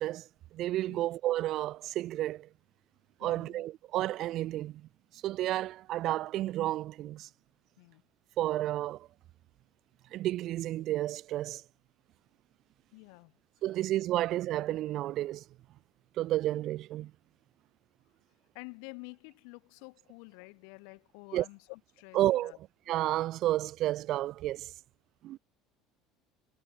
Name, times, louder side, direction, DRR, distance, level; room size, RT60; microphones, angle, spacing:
voice 1, 0.0-2.5 3.2-4.9 5.2-7.3 8.4-9.1 10.1-11.6 13.6-15.4 16.2-17.1 21.3-21.5 22.1-22.5 22.9-24.7 25.2-25.4, right 14 dB, 60° right, 2.3 m, -31 dB
voice 2, 3.2-3.7 7.8-8.0 12.9-13.4 18.5-22.6, left 40 dB or more, 75° left, 6.3 m, -49 dB
hypercardioid pair, 80°, 0 cm